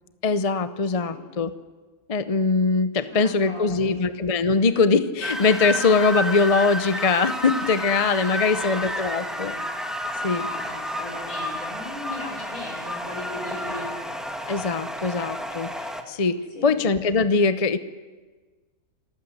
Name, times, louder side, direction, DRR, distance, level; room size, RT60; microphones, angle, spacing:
voice 1, 0.2-1.5 2.1-9.5 10.2-10.5 14.5-17.8, left 4 dB, 35° left, 12 dB, 0.7 m, -22 dB
voice 2, 0.9-1.3 3.1-4.0 8.4-9.6 10.3-14.0 16.5-16.8, left 1 dB, 75° left, 1 dB, 5.7 m, -38 dB
sound 1, 5.2-16.0, equal, ahead, 1.6 m, -31 dB
27.5 x 14.0 x 7.9 m, 1.3 s
omnidirectional pair, 1.5 m